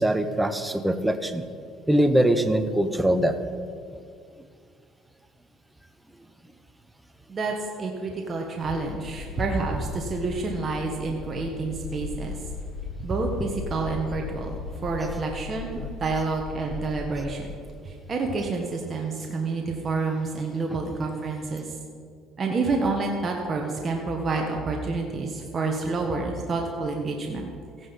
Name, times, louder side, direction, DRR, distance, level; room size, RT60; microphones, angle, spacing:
voice 1, 0.0-1.4 1.9-3.4 9.7-9.8 15.8-15.9, right 1 dB, 5° right, 9 dB, 0.8 m, -22 dB
voice 2, 7.3-12.3 13.0-14.6 14.8-17.5 17.8-21.6 22.4-27.5, right 3 dB, 30° right, 1 dB, 1.4 m, -28 dB
sound 1, 8.6-17.6, left 4 dB, 70° left, 0.9 m, -38 dB
15.0 x 9.8 x 5.4 m, 2.3 s
cardioid pair, 110°, 0 cm